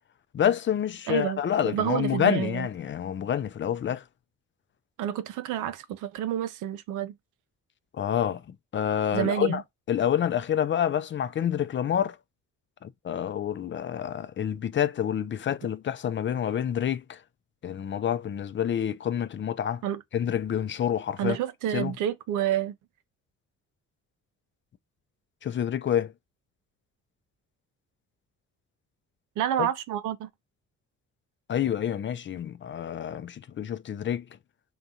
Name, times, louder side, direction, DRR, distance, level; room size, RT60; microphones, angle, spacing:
voice 1, 0.3-4.0 7.9-8.4 8.7-9.6 9.9-12.2 12.8-17.2 17.6-19.8 20.1-21.4 21.7-21.9 25.4-26.1 29.6-29.7 31.5-34.2, left 9 dB, 40° left, 0.5 m, -28 dB
voice 2, 1.1-2.7 5.0-7.1 9.1-9.6 15.6-15.7 19.8-20.0 21.2-22.8 29.4-30.3, right 11 dB, 85° right, 0.6 m, -29 dB
3.9 x 3.6 x 2.7 m
cardioid pair, 90°, 30 cm